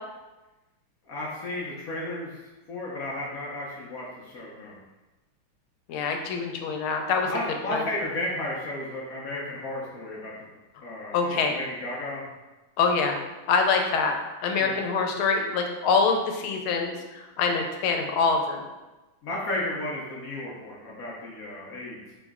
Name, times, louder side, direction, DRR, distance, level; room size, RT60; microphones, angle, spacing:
voice 1, 1.1-2.4 2.7-4.8 7.2-10.5 10.8-12.3 14.6-14.8 19.2-22.0, left 1 dB, 65° left, -4 dB, 0.9 m, -33 dB
voice 2, 5.9-7.3 7.7-7.9 11.1-11.6 12.8-13.2 13.5-14.1 14.4-18.6, left 4 dB, 85° left, 3 dB, 1.5 m, -25 dB
4.7 x 3.1 x 3.5 m, 1.1 s
omnidirectional pair, 2.2 m